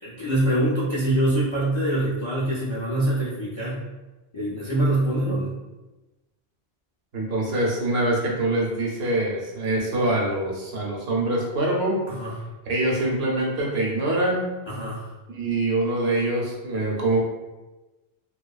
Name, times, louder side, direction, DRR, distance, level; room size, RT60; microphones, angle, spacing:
voice 1, 0.0-3.8 4.3-5.5 12.1-12.3 14.7-15.1, right 1 dB, 45° left, -8 dB, 0.4 m, -24 dB
voice 2, 7.1-12.0 12.7-14.5 15.3-17.2, right 2 dB, 75° right, -2 dB, 0.9 m, -24 dB
2.6 x 2.2 x 2.3 m, 1.1 s
omnidirectional pair, 1.1 m